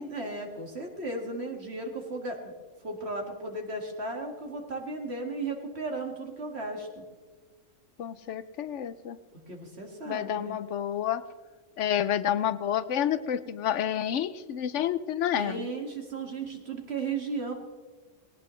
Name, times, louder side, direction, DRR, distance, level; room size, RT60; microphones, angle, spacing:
voice 1, 0.0-2.5 2.8-7.0 9.5-10.6 15.4-17.5, right 3 dB, 55° right, 2 dB, 2.3 m, -35 dB
voice 2, 8.0-9.2 10.1-11.2 11.8-15.7, left 10 dB, 75° left, 15 dB, 0.9 m, -29 dB
18.5 x 18.5 x 3.2 m, 1.4 s
omnidirectional pair, 1.3 m